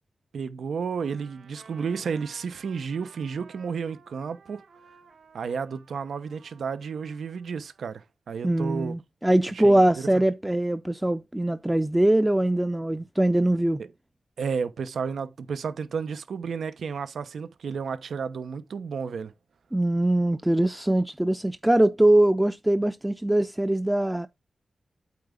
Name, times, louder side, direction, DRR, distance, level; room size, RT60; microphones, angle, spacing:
voice 1, 0.3-4.6 5.3-8.9 9.6-10.1 14.4-19.3, right 6 dB, 85° right, 0.9 m, -32 dB
Trumpet, 1.0-8.1, right 5 dB, 70° right, 3.4 m, -55 dB
voice 2, 8.4-13.8 19.7-24.3, right 1 dB, 10° right, 0.5 m, -22 dB
8.6 x 4.7 x 3.8 m
wide cardioid pair, 115°, 0 cm